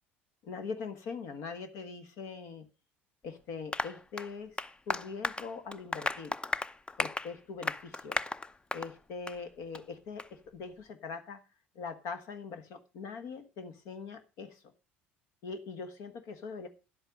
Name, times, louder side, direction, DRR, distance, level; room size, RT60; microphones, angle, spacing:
voice 1, 0.4-2.6 3.2-4.6 4.9-6.3 7.0-8.2 8.7-11.4 11.7-14.6 15.4-16.7, left 5 dB, 60° left, 9 dB, 1.5 m, -42 dB
Applause, 3.7-8.9 9.3-9.4 9.7-9.8 10.2-10.3, left 3 dB, 15° left, 0.6 m, -35 dB
10.5 x 8.1 x 5.2 m, 0.31 s
hypercardioid pair, 65°, 6 cm